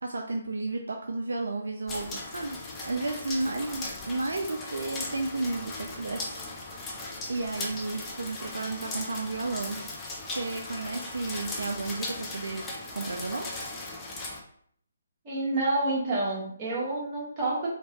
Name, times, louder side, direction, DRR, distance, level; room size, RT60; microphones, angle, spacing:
voice 1, 0.0-6.4 7.0-9.8 10.2-12.6 12.9-13.5, right 2 dB, 65° right, 3 dB, 0.3 m, -33 dB
sound 1, 1.9-14.4, left 2 dB, 15° left, 0.5 m, -38 dB
voice 2, 15.2-17.7, right 2 dB, 25° right, -6 dB, 1.3 m, -28 dB
3.0 x 2.8 x 2.9 m, 0.63 s
figure-of-eight pair, 140°, 0 cm